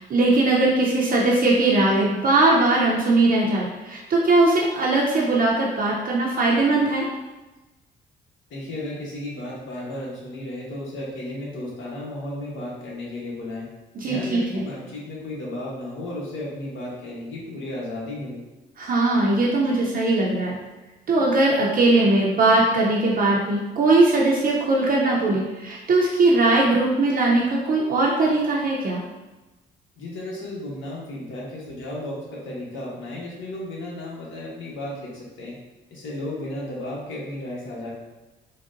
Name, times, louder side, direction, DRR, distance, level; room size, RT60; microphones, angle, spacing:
voice 1, 0.0-7.1 13.9-14.7 18.8-20.6 21.1-29.0, right 2 dB, 45° right, -4 dB, 0.5 m, -20 dB
voice 2, 8.5-13.7 14.0-18.4 30.0-35.5 35.9-38.0, left 1 dB, 75° left, -4 dB, 1.0 m, -34 dB
3.8 x 2.1 x 2.5 m, 1.1 s
cardioid pair, 90°, 20 cm